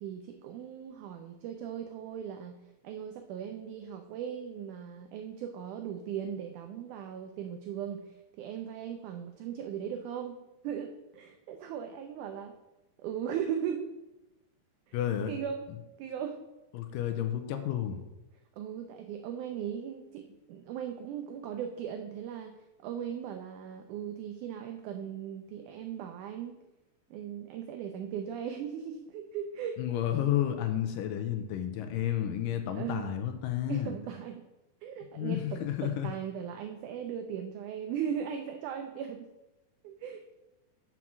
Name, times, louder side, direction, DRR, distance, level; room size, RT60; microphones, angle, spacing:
voice 1, 0.0-2.6 2.8-12.6 13.0-13.9 14.9-15.0 15.3-15.6 16.0-16.4 18.6-26.6 27.1-29.9 32.7-33.1 33.7-34.4 34.8-39.3 39.8-40.2, right 8 dB, 85° right, 6 dB, 1.7 m, -38 dB
voice 2, 14.9-15.3 16.7-18.0 29.8-33.9 35.2-36.1, left 11 dB, 80° left, 8 dB, 2.1 m, -31 dB
6.0 x 5.6 x 6.1 m, 0.98 s
omnidirectional pair, 4.2 m